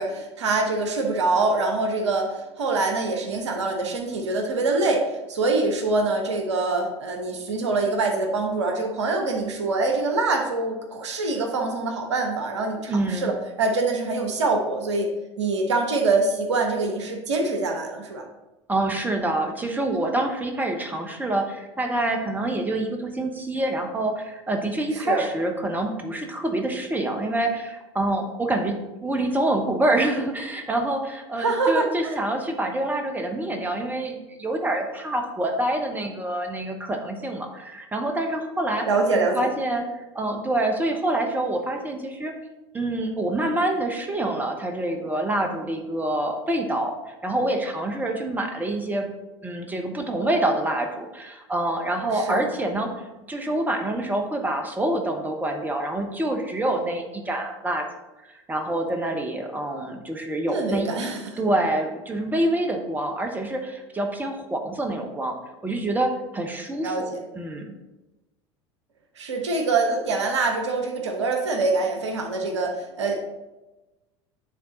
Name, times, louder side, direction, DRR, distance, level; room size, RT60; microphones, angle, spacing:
voice 1, 0.0-15.1 15.4-18.2 19.9-20.0 24.9-25.2 31.4-32.2 38.9-39.5 52.1-52.4 60.5-61.5 66.8-67.2 69.2-73.2, right 3 dB, 75° right, 3 dB, 1.0 m, -25 dB
voice 2, 12.9-13.3 18.7-38.9 39.1-39.9 40.1-42.3 42.7-49.1 49.4-52.9 53.3-57.8 58.3-61.1 61.4-65.4 65.6-67.1 67.3-67.7, right 1 dB, 10° right, 4 dB, 0.9 m, -26 dB
9.3 x 3.6 x 3.8 m, 1.1 s
figure-of-eight pair, 75°, 15 cm